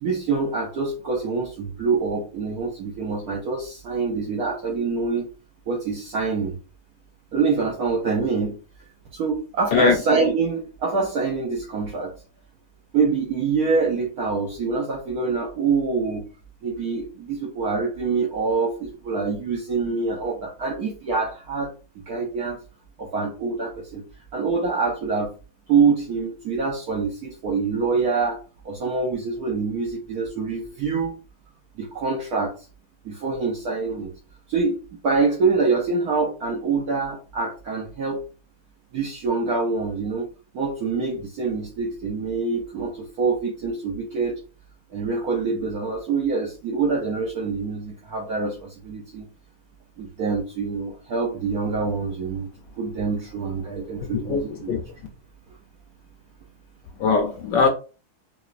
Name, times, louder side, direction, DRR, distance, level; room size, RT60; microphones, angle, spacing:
voice 1, 0.0-5.3 5.7-6.6 7.3-8.6 9.1-12.1 12.9-16.2 16.6-21.7 22.1-22.6 23.0-24.0 24.3-25.3 25.7-28.4 28.6-31.1 31.8-32.5 33.0-34.1 34.5-34.8 35.0-38.2 38.9-40.3 40.5-44.4 44.9-49.3 50.0-52.5 52.8-54.7, right 4 dB, 70° right, 0.9 m, -25 dB
voice 2, 57.0-57.7, left 5 dB, 75° left, 1.1 m, -19 dB
4.8 x 2.3 x 2.4 m
omnidirectional pair, 2.2 m